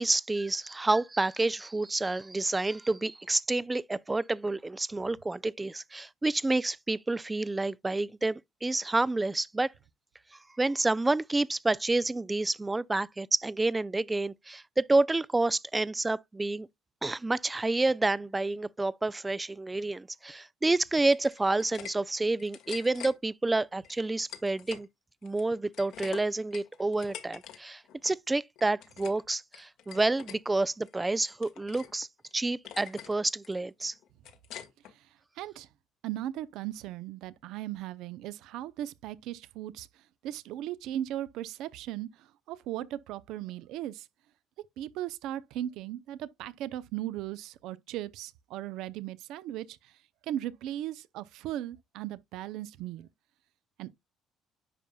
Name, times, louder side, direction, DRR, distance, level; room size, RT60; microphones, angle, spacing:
voice 1, 0.0-9.7 10.6-16.7 17.0-24.9 25.2-32.1 32.3-33.9, right 2 dB, 15° right, 0.4 m, -29 dB
sound 1, 21.1-21.9 22.2-23.1 23.8-24.9 25.2-27.6 27.8-28.2 28.6-29.2 29.5-30.4 30.8-31.9 32.2-32.3 32.7-33.1 33.4-34.9, left 10 dB, 75° left, 1.5 m, -45 dB
voice 2, 35.4-35.7 36.0-39.9 40.2-44.1 44.8-49.9 50.2-53.1 53.8-53.9, right 12 dB, 80° right, 0.6 m, -37 dB
9.9 x 5.5 x 2.2 m
cardioid pair, 110°, 0 cm